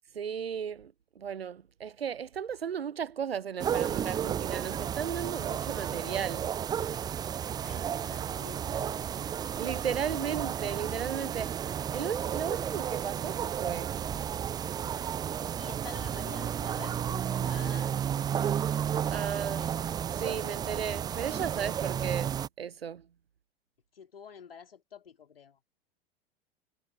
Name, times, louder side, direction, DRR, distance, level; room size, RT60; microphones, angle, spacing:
voice 1, 0.2-6.5 9.5-11.5 11.9-14.0 19.1-19.6 20.2-23.1, right 7 dB, 85° right, 0.5 m, -35 dB
sound 1, 3.6-22.5, right 9 dB, 15° right, 0.4 m, -32 dB
voice 2, 7.6-9.2 15.5-18.6 18.9-19.8 23.9-25.6, left 7 dB, 75° left, 2.2 m, -49 dB
figure-of-eight pair, 85°, 29 cm